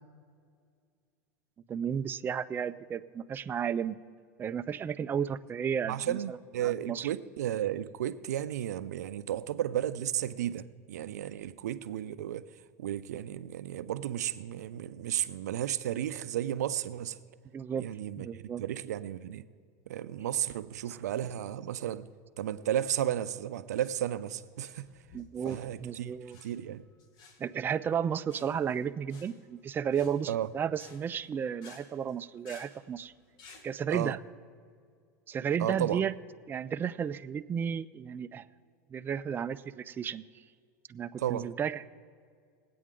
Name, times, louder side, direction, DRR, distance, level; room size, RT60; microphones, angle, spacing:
voice 1, 1.7-4.0 4.4-7.1 17.5-17.8 18.2-18.6 25.1-26.4 27.4-33.1 33.6-34.2 35.3-36.1 36.5-38.4 38.9-40.2 40.9-41.9, right 8 dB, 25° right, 0.3 m, -33 dB
voice 2, 5.9-12.4 12.8-17.2 17.8-19.4 19.9-22.1 22.4-24.9 25.4-26.8 30.3-30.5 33.9-34.2 35.6-36.0 41.2-41.5, right 11 dB, 90° right, 0.4 m, -33 dB
sound 1, 22.6-33.7, left 4 dB, 50° left, 1.6 m, -57 dB
20.0 x 8.5 x 3.7 m
supercardioid pair, 105°, 9 cm